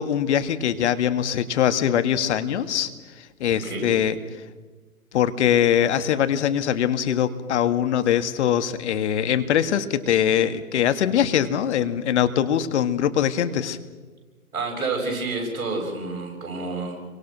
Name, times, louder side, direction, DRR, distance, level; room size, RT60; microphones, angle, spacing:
voice 1, 0.0-2.9 3.2-4.2 5.1-13.8, left 9 dB, 50° left, 10 dB, 1.9 m, -22 dB
voice 2, 3.5-3.9 14.5-17.0, right 3 dB, 65° right, 2 dB, 7.6 m, -29 dB
29.5 x 24.0 x 6.2 m, 1.3 s
figure-of-eight pair, 125°, 44 cm